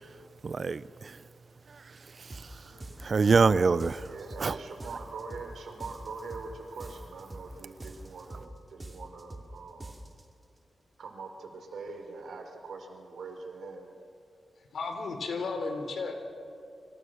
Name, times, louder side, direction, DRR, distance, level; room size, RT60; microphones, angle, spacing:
voice 1, 0.4-1.2 2.2-2.6 3.0-4.1 4.4-4.6, right 4 dB, 50° right, 0.7 m, -25 dB
sound 1, 2.3-2.5 2.8-3.5 3.8-4.5 4.8-5.5 5.8-6.5 6.8-7.5 7.8-8.5 8.8-9.5 9.8-10.2, right 2 dB, 25° right, 2.6 m, -44 dB
voice 2, 2.6-3.0 14.7-16.2, left 4 dB, 80° left, 3.7 m, -34 dB
voice 3, 4.0-10.0 11.0-13.9, right 4 dB, 90° right, 4.1 m, -43 dB
28.0 x 26.5 x 6.5 m
wide cardioid pair, 105°, 0 cm